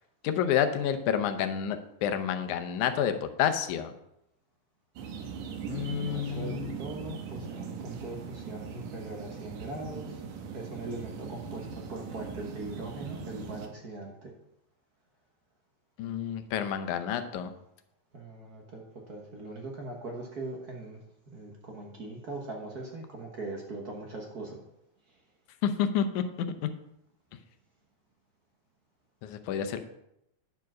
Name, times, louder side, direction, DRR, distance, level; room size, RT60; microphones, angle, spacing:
voice 1, 0.2-3.9 5.7-6.8 16.0-17.5 25.6-26.7 29.2-29.8, left 8 dB, 85° left, 8 dB, 2.2 m, -29 dB
sound 1, 5.0-13.7, right 6 dB, 90° right, 2.4 m, -40 dB
voice 2, 5.7-10.2 10.5-14.3 18.1-21.0 21.3-24.6, right 2 dB, 50° right, 0 dB, 1.2 m, -41 dB
10.5 x 4.7 x 6.1 m, 0.81 s
omnidirectional pair, 3.4 m